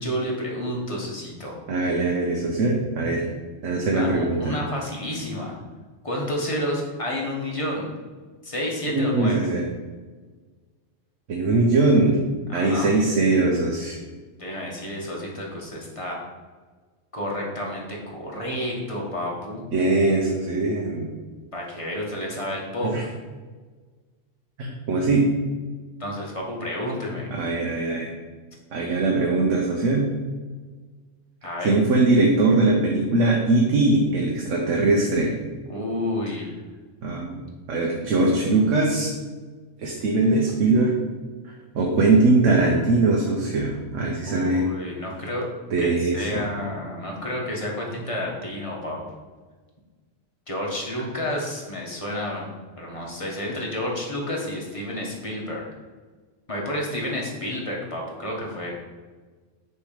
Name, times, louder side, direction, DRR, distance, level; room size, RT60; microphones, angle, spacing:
voice 1, 0.0-1.6 3.9-5.6 6.0-7.9 8.4-9.5 12.5-12.9 14.4-16.2 17.1-19.6 21.5-22.9 26.0-27.3 31.4-31.8 35.6-36.5 44.3-45.5 45.8-49.0 50.5-52.5 52.8-55.7 56.5-58.7, left 1 dB, 25° left, -2 dB, 1.2 m, -30 dB
voice 2, 1.7-3.3 3.6-4.6 8.9-9.6 11.3-12.2 12.5-14.0 19.7-21.1 22.8-23.0 24.6-25.3 27.3-28.1 28.7-30.1 31.6-35.3 37.0-37.4 37.7-39.1 39.8-40.9 41.4-44.6 45.7-46.5, right 2 dB, 70° right, 0 dB, 1.1 m, -21 dB
6.2 x 3.4 x 4.9 m, 1.4 s
omnidirectional pair, 1.3 m